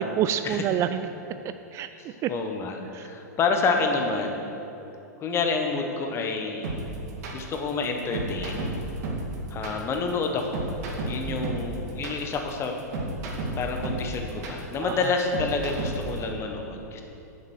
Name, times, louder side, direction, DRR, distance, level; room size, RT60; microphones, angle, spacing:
voice 1, 0.2-1.1 1.7-2.3 2.9-3.1 11.3-11.6 14.8-15.1, right 10 dB, 30° right, 10 dB, 0.3 m, -28 dB
voice 2, 2.3-4.6 5.2-6.8 7.3-8.7 9.5-10.7 11.0-12.7 13.6-17.0, left 4 dB, 30° left, 3 dB, 1.3 m, -28 dB
sound 1, 6.6-16.2, right 3 dB, 60° right, 2.0 m, -32 dB
8.2 x 7.1 x 6.5 m, 2.9 s
hypercardioid pair, 110°, 9 cm